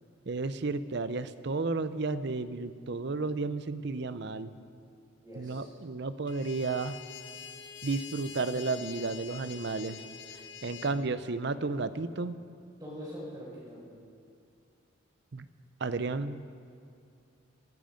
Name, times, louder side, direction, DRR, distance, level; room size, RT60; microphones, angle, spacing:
voice 1, 0.3-4.5 5.4-7.0 7.8-10.0 10.6-12.3 15.3-15.4 15.8-16.4, right 3 dB, 60° right, 13 dB, 0.6 m, -32 dB
voice 2, 5.2-5.7 10.7-10.9 12.8-13.9, equal, 20° right, -10 dB, 4.6 m, -43 dB
sound 1, 6.3-11.0, left 7 dB, 60° left, 1.0 m, -46 dB
25.0 x 11.0 x 5.1 m, 2.5 s
head